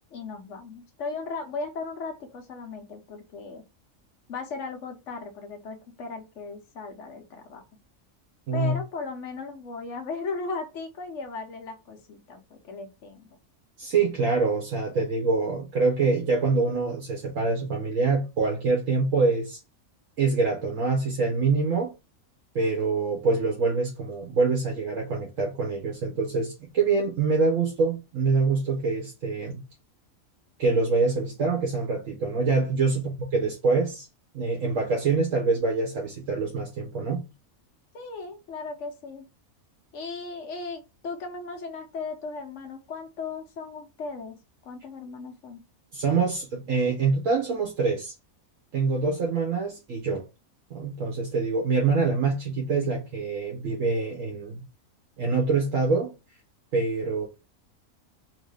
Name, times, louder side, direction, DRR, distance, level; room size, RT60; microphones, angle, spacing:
voice 1, 0.1-3.6 4.3-7.6 8.5-13.3 32.9-33.0 37.9-39.3 39.9-45.6, left 4 dB, 65° left, 1.1 m, -37 dB
voice 2, 13.8-19.6 20.2-21.9 22.5-29.6 30.6-34.1 34.3-37.2 45.9-48.1 48.7-50.2 50.7-54.6 55.2-56.1 56.7-57.3, right 4 dB, 70° right, 1.2 m, -25 dB
3.1 x 2.7 x 3.3 m
omnidirectional pair, 1.4 m